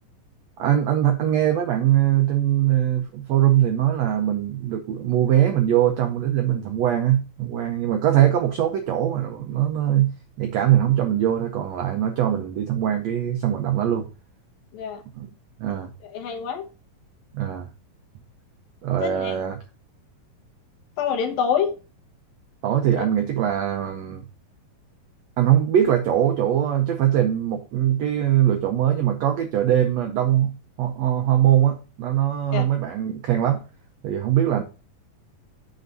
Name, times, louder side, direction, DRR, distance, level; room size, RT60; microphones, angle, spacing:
voice 1, 0.6-14.1 15.2-15.3 15.6-15.9 17.3-17.7 18.8-19.6 22.6-24.2 25.4-33.6 34.0-34.6, right 11 dB, 85° right, 1.5 m, -22 dB
voice 2, 16.0-16.7 19.0-19.4 21.0-21.8 23.0-23.1 32.5-32.6, left 7 dB, 80° left, 3.0 m, -26 dB
7.8 x 3.9 x 6.7 m
omnidirectional pair, 4.1 m